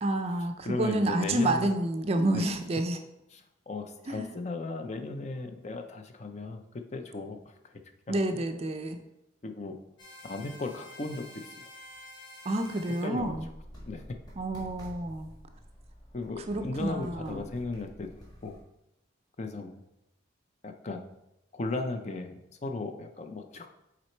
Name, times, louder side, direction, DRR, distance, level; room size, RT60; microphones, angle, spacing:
voice 1, 0.0-3.0 4.1-4.3 8.1-9.0 12.5-13.5 14.4-15.3 16.5-17.4, right 2 dB, 30° right, 7 dB, 0.4 m, -29 dB
voice 2, 0.6-1.7 2.3-2.5 3.3-6.6 6.9-7.5 8.1-8.4 9.4-9.8 10.2-11.7 13.0-13.4 13.9-14.0 16.1-18.6 19.4-19.8 20.6-21.0 21.5-23.7, left 3 dB, 35° left, 6 dB, 0.5 m, -36 dB
sound 1, 10.0-13.1, left 1 dB, 60° left, 1.6 m, -49 dB
sound 2, 13.1-18.6, equal, 20° left, 1.8 m, -48 dB
6.0 x 4.0 x 4.4 m, 0.87 s
head